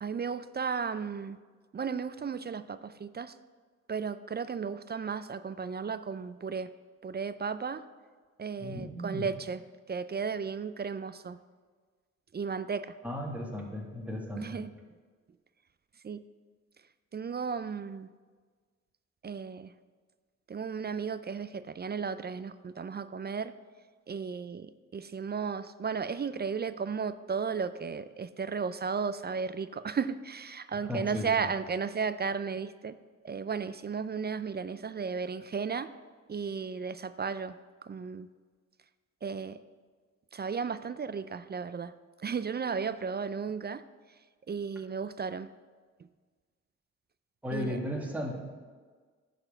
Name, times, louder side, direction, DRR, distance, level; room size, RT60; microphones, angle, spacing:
voice 1, 0.0-1.4 1.7-3.4 3.9-6.7 7.0-7.8 8.4-9.6 9.9-11.4 12.3-13.0 14.4-14.7 16.0-16.2 17.1-18.1 19.2-19.7 20.5-23.5 24.1-33.0 33.2-35.9 36.3-37.6 37.9-38.3 39.2-39.6 40.3-41.9 42.2-43.8 44.5-45.5 47.5-47.8, right 5 dB, 35° right, 13 dB, 0.4 m, -34 dB
voice 2, 8.6-9.3 13.0-14.6 30.7-31.5 47.4-48.4, left 1 dB, 5° right, -1 dB, 2.0 m, -36 dB
10.5 x 4.2 x 6.6 m, 1.5 s
cardioid pair, 65°, 29 cm